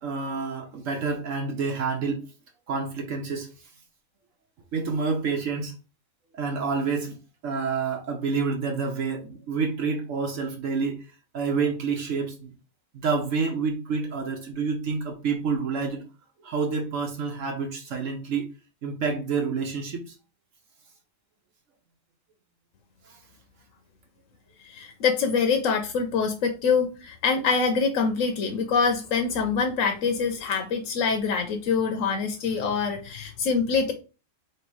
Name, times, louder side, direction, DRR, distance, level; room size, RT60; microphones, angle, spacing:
voice 1, 0.0-2.2 2.7-3.5 4.7-5.8 6.3-7.2 7.4-11.0 11.3-12.5 12.9-16.0 16.4-18.5 18.8-20.1, right 5 dB, 75° right, 2 dB, 1.2 m, -28 dB
voice 2, 24.6-33.9, left 5 dB, 80° left, 4 dB, 1.1 m, -25 dB
3.2 x 3.1 x 4.6 m, 0.32 s
omnidirectional pair, 1.3 m